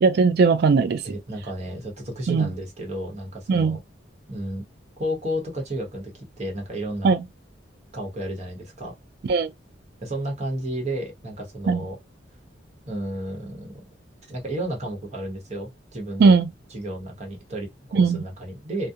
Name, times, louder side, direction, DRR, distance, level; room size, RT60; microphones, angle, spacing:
voice 1, 0.0-1.0 2.3-2.5 3.5-3.8 7.0-7.2 9.3-9.5 11.7-11.8 16.2-16.5 17.9-18.2, right 4 dB, 55° right, 0.3 m, -18 dB
voice 2, 1.0-3.8 4.3-4.6 5.0-7.1 7.9-8.9 10.0-12.0 12.8-13.8 14.3-16.3 16.7-18.9, right 1 dB, 35° right, 1.0 m, -32 dB
2.4 x 2.1 x 2.7 m
head